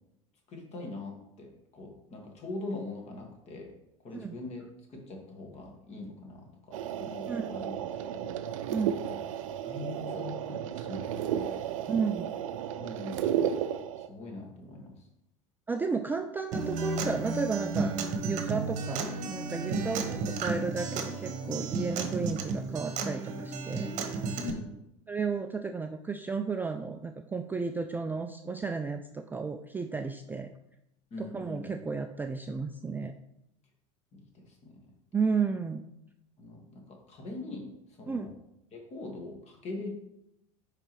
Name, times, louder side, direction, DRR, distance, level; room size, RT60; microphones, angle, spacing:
voice 1, 0.5-3.7 4.0-7.7 8.0-8.7 9.0-9.2 9.6-11.8 12.8-13.6 14.0-15.0 19.7-19.9 24.4-24.7 31.1-31.8 34.1-34.8 36.4-38.3 38.7-39.9, left 2 dB, 35° left, 1 dB, 1.9 m, -42 dB
sound 1, 6.7-14.1, right 9 dB, 65° right, 0.5 m, -33 dB
voice 2, 11.9-12.3 15.7-17.9 18.2-23.9 24.2-24.3 25.1-30.5 31.2-33.1 35.1-35.8 38.1-38.3, right 5 dB, 10° right, 6 dB, 0.3 m, -33 dB
Acoustic guitar, 16.5-24.5, right 4 dB, 45° right, 1.0 m, -33 dB
9.7 x 3.8 x 3.1 m, 0.84 s
figure-of-eight pair, 80°, 18 cm